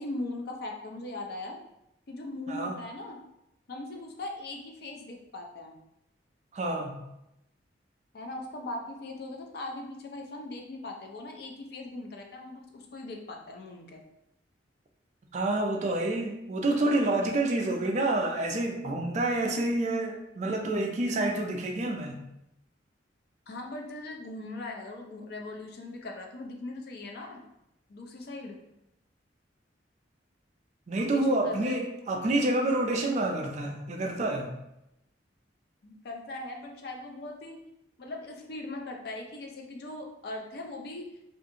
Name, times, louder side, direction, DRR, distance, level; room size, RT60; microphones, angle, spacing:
voice 1, 0.0-1.6 2.1-3.2 3.7-5.8 8.1-14.0 23.5-27.4 27.9-28.6 31.0-31.8 35.8-37.6 38.0-41.1, left 2 dB, 55° left, 1 dB, 0.4 m, -40 dB
voice 2, 2.5-2.8 6.5-7.0 15.3-22.2 30.9-34.6, right 2 dB, 40° right, 2 dB, 0.3 m, -28 dB
2.5 x 2.4 x 2.7 m, 0.85 s
head